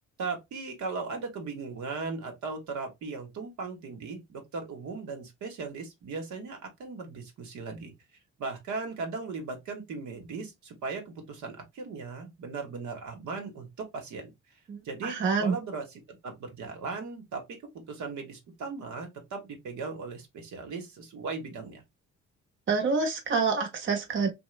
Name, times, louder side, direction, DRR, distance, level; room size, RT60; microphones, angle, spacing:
voice 1, 0.2-7.9 8.4-14.3 14.8-17.4 17.7-21.8, right 4 dB, 70° right, 1.1 m, -38 dB
voice 2, 14.7-15.6 22.7-24.3, right 5 dB, 40° right, 0.9 m, -27 dB
3.0 x 2.1 x 3.1 m
cardioid pair, 90°, 30 cm